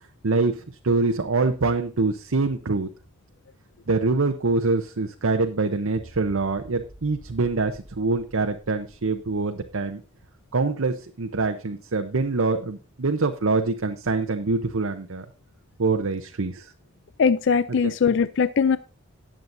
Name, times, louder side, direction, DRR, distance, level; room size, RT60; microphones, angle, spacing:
voice 1, 0.2-2.9 3.9-10.0 10.5-15.3 15.8-16.7 17.8-17.9, right 3 dB, 70° right, 5 dB, 0.8 m, -25 dB
sound 1, 5.9-10.0, right 1 dB, 25° left, 3.5 m, -49 dB
voice 2, 17.2-18.8, left 6 dB, 55° left, 15 dB, 0.4 m, -20 dB
18.5 x 7.5 x 2.6 m, 0.34 s
head